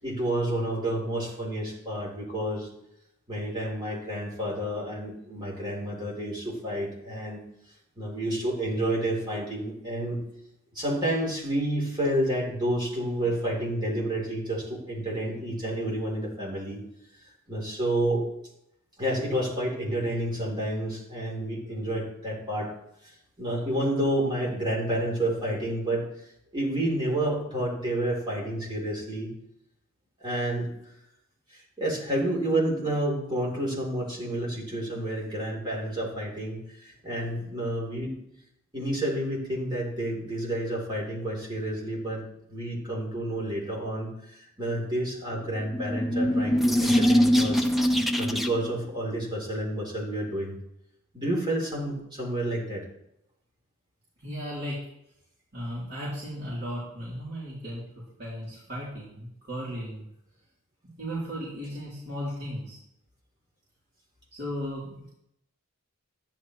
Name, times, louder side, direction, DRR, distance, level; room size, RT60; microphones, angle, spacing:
voice 1, 0.0-2.7 3.3-7.4 8.0-10.2 10.7-16.8 17.5-18.2 19.0-22.7 23.0-26.0 26.5-29.3 30.2-30.7 31.5-38.2 38.7-42.2 42.5-50.6 51.1-52.8, right 1 dB, 20° right, -4 dB, 3.4 m, -30 dB
sound 1, 45.5-48.8, equal, ahead, 0.6 m, -23 dB
voice 2, 54.2-54.8 55.5-57.8 58.2-60.0 61.0-62.8 64.4-65.1, equal, 50° right, -9 dB, 3.5 m, -35 dB
13.0 x 10.5 x 3.1 m, 0.79 s
head